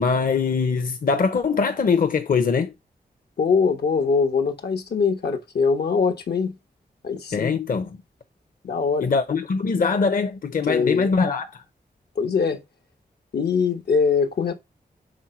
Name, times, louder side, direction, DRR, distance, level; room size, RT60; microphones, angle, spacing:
voice 1, 0.0-2.7 7.3-7.9 9.0-11.6, left 5 dB, 60° left, 0.8 m, -22 dB
voice 2, 3.4-6.5 7.0-7.6 8.6-9.1 10.7-11.1 12.1-12.6 13.3-14.5, left 5 dB, 85° left, 1.3 m, -22 dB
6.4 x 3.9 x 4.3 m
wide cardioid pair, 95°, 16 cm